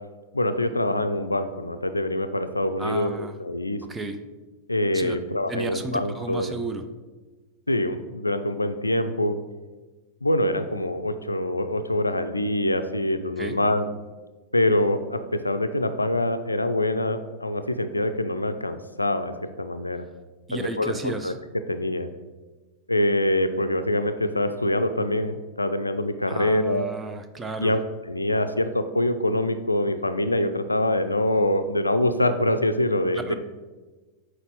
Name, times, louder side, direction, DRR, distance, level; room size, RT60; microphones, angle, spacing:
voice 1, 0.3-3.8 4.7-6.5 7.7-9.4 10.2-13.8 14.5-20.0 20.5-21.3 21.7-22.1 22.9-26.9 27.6-27.8 28.1-33.3, left 1 dB, 85° left, 10 dB, 0.4 m, -25 dB
voice 2, 2.8-3.3 3.8-4.2 4.9-5.2 5.5-6.9 13.4-13.6 20.5-21.4 26.3-27.7 33.1-33.3, right 2 dB, 15° right, 7 dB, 0.6 m, -33 dB
6.7 x 4.4 x 4.6 m, 1.3 s
figure-of-eight pair, 90°, 0 cm